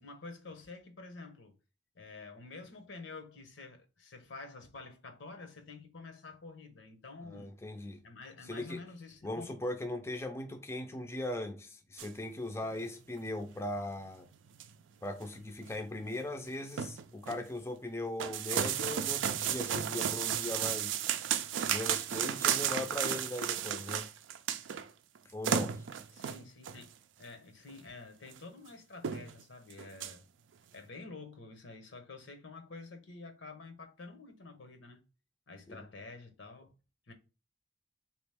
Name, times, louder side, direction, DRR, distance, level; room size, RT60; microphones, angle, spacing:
voice 1, 0.0-1.5 1.9-7.5 8.0-9.6 26.1-26.9 27.2-30.3 30.7-35.0 35.5-36.7 37.1-37.2, left 3 dB, 80° left, 1.0 m, -49 dB
voice 2, 7.3-8.0 8.5-8.8 9.2-14.3 15.0-21.0 21.7-24.1 25.3-25.8 35.7-35.8, left 1 dB, 15° left, 0.4 m, -39 dB
sound 1, 12.0-12.1 12.6-12.8 13.1-13.2 13.8-13.9 14.3-14.8 15.2-15.3 15.6-15.7 16.1-16.2 16.5-17.4 18.2-24.9 25.1-25.2 25.4-26.8 27.7-27.8 28.3-28.4 28.6-28.7 29.0-29.4 29.7-30.1, right 9 dB, 90° right, 0.4 m, -33 dB
3.5 x 3.0 x 3.3 m
head